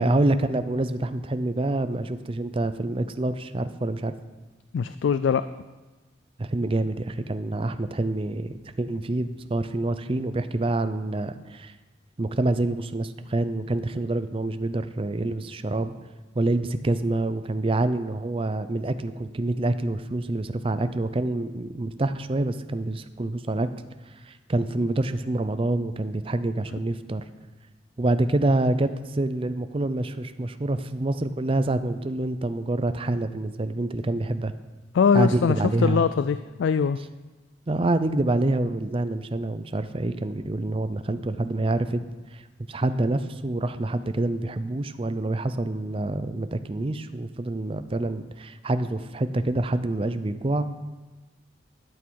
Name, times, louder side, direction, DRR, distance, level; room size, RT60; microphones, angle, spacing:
voice 1, 0.0-4.1 6.4-11.7 12.2-15.9 16.3-23.7 24.3-27.2 28.0-34.5 35.1-36.0 37.7-42.0 42.3-42.4 42.7-50.6, right 2 dB, 30° right, 11 dB, 0.5 m, -26 dB
voice 2, 4.7-5.4 34.9-35.6 35.8-37.0, left 6 dB, 75° left, 13 dB, 0.3 m, -22 dB
12.0 x 8.4 x 4.7 m, 1.2 s
head